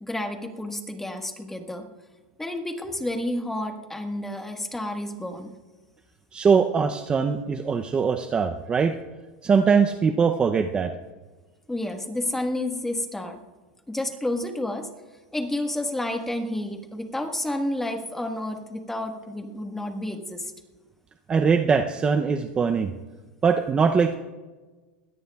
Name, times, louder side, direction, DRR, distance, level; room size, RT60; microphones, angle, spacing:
voice 1, 0.0-1.9 2.4-5.5 11.7-13.4 13.9-14.9 15.3-20.5, left 1 dB, 5° left, 5 dB, 1.4 m, -30 dB
voice 2, 6.3-8.9 9.4-10.9 21.3-22.9 23.4-24.2, right 5 dB, 20° right, 6 dB, 0.6 m, -21 dB
21.5 x 17.0 x 2.3 m, 1.3 s
supercardioid pair, 135°, 5 cm